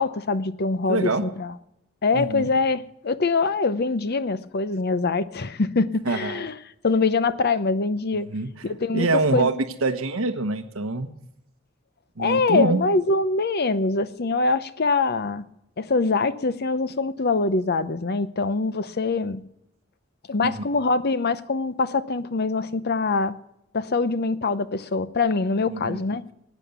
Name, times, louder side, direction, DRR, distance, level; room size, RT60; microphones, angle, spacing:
voice 1, 0.0-1.5 2.0-6.6 6.8-8.3 8.6-9.6 12.2-15.4 15.8-19.4 20.3-23.3 23.7-26.2, left 3 dB, 50° left, 13 dB, 0.8 m, -24 dB
voice 2, 0.9-1.2 2.1-2.5 6.1-6.5 8.3-8.5 8.9-9.5 9.8-11.1 12.2-12.8 20.4-20.5 25.7-26.0, right 3 dB, 85° right, 7 dB, 1.1 m, -25 dB
19.0 x 9.2 x 6.9 m, 0.81 s
head